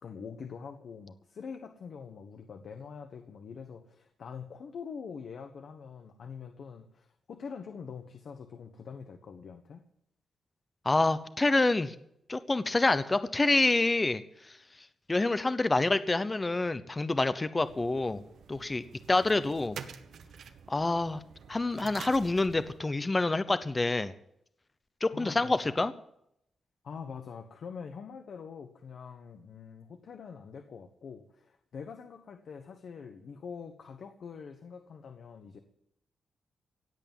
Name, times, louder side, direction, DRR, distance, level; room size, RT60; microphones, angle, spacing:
voice 1, 0.0-9.8 25.1-25.8 26.8-35.6, left 6 dB, 65° left, 6 dB, 1.3 m, -44 dB
voice 2, 10.8-11.9 12.3-14.2 15.1-18.2 18.5-19.8 20.7-21.2 21.5-24.1 25.0-25.9, left 2 dB, 20° left, 13 dB, 0.8 m, -27 dB
sound 1, 17.6-22.8, right 7 dB, 85° right, 1.2 m, -48 dB
17.0 x 8.3 x 9.1 m, 0.75 s
wide cardioid pair, 135°, 0 cm